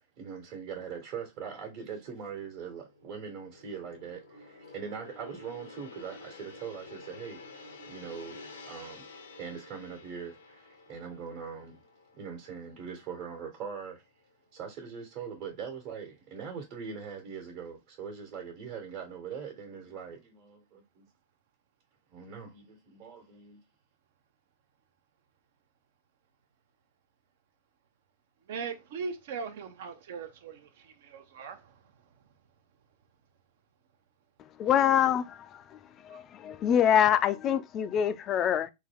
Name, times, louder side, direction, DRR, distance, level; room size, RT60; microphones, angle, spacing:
voice 1, 0.2-9.1 9.4-11.8 12.1-14.0 14.5-21.1 22.1-23.6, right 6 dB, 50° right, 1.2 m, -41 dB
Gong, 1.8-13.9 14.2-14.5, left 3 dB, 85° left, 0.8 m, -51 dB
voice 2, 28.5-31.6, right 5 dB, 65° right, 0.7 m, -39 dB
voice 3, 34.6-38.7, left 9 dB, 35° left, 0.4 m, -25 dB
3.5 x 2.2 x 3.5 m
hypercardioid pair, 110°, 0 cm